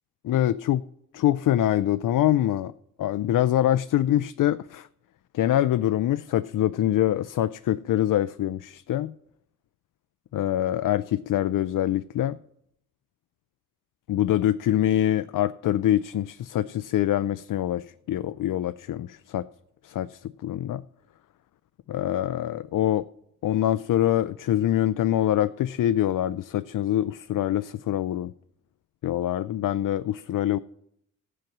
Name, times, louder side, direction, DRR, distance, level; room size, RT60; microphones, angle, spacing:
voice 1, 0.2-0.8 1.1-2.7 3.0-4.9 5.3-9.1 10.3-12.4 14.1-19.5 19.8-20.8 21.9-23.1 23.4-28.3 29.0-30.6, left 12 dB, 60° left, 0.5 m, -24 dB
14.5 x 7.8 x 6.1 m
cardioid pair, 60°, 37 cm